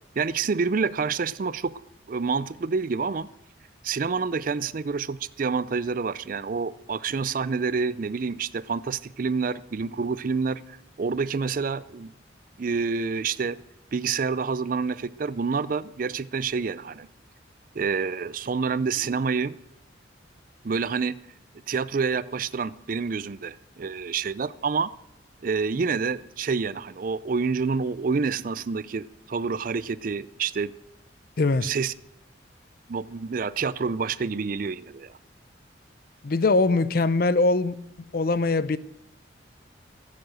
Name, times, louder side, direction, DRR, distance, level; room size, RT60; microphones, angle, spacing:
voice 1, 0.2-1.7 2.1-3.3 3.8-12.1 12.6-13.6 13.9-17.1 17.7-19.6 20.6-21.2 21.7-24.9 25.4-30.7 31.6-31.9 32.9-35.1, right 5 dB, 45° right, 0.4 m, -28 dB
voice 2, 31.4-31.7 36.2-37.8 38.1-38.8, left 3 dB, 50° left, 0.6 m, -22 dB
15.5 x 7.5 x 7.6 m
head